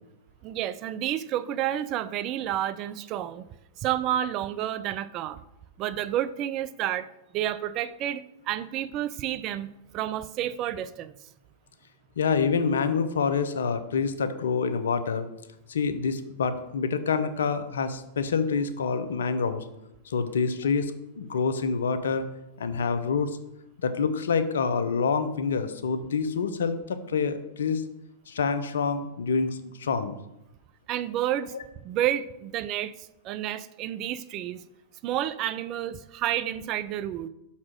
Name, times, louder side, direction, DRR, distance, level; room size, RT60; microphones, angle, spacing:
voice 1, 0.4-3.5 3.8-5.4 5.8-7.1 7.3-11.1 30.9-31.5 31.8-32.9 33.2-34.6 35.0-37.3, right 12 dB, 40° right, 15 dB, 0.4 m, -30 dB
voice 2, 12.2-15.3 15.7-19.6 20.1-22.3 22.6-23.4 23.8-27.8 28.3-30.2 31.5-31.6, left 5 dB, 75° left, 11 dB, 0.6 m, -27 dB
6.0 x 4.3 x 6.1 m, 0.87 s
hypercardioid pair, 100°, 0 cm